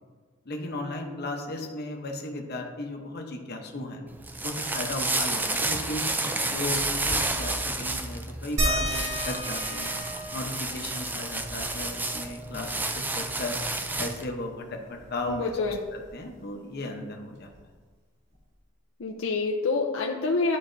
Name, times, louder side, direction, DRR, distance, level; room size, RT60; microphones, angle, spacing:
voice 1, 0.5-4.0 4.4-6.0 6.4-9.9 10.3-13.6 14.0-17.5, left 2 dB, 50° left, 2 dB, 0.8 m, -35 dB
sound 1, 4.1-14.3, right 2 dB, 10° right, 0.3 m, -30 dB
sound 2, 8.6-13.7 14.1-14.2 14.5-16.2 17.5-17.6 18.3-18.4, equal, 55° right, 1.9 m, -35 dB
voice 2, 15.3-15.8 19.0-20.6, left 3 dB, 75° left, 0 dB, 0.5 m, -27 dB
11.0 x 4.1 x 2.6 m, 1.4 s
head